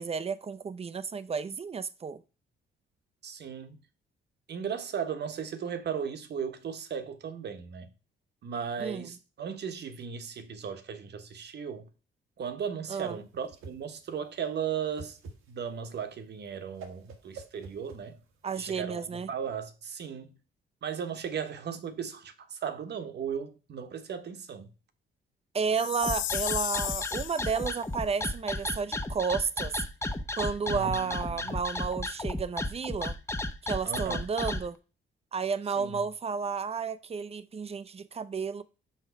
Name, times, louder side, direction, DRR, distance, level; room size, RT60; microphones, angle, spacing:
voice 1, 0.0-2.2 8.8-9.0 12.9-13.2 18.4-19.3 25.5-29.8 30.4-33.1 33.6-34.8 35.3-38.6, right 5 dB, 30° right, 0.6 m, -32 dB
voice 2, 3.2-3.8 4.5-7.9 8.4-11.9 12.4-15.2 15.5-18.2 18.5-20.4 20.8-24.7 30.6-31.5 33.8-34.3 35.8-36.0, right 7 dB, 60° right, 1.2 m, -36 dB
Whoosh swoosh swish, 13.0-18.5, right 4 dB, 90° right, 1.5 m, -49 dB
Chime, 25.7-27.7, left 15 dB, 75° left, 0.4 m, -34 dB
sound 1, 26.0-34.6, left 2 dB, 15° left, 0.8 m, -33 dB
5.8 x 5.4 x 4.6 m
cardioid pair, 90°, 20 cm